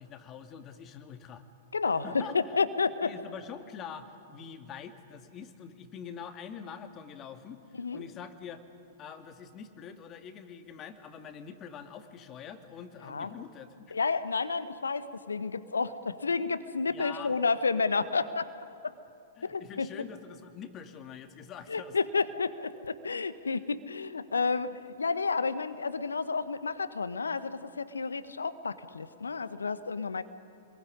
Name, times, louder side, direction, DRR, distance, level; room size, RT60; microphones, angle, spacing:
voice 1, 0.0-1.4 2.0-2.6 3.0-8.6 9.0-13.8 16.9-17.3 19.4-22.0, left 7 dB, 25° left, 7 dB, 2.3 m, -45 dB
voice 2, 1.7-3.1 7.8-8.0 13.0-13.3 13.9-18.5 18.8-18.9 19.4-19.9 21.7-30.2, left 4 dB, 75° left, 13 dB, 1.4 m, -31 dB
28.0 x 22.0 x 9.8 m, 2.7 s
figure-of-eight pair, 105°, 0 cm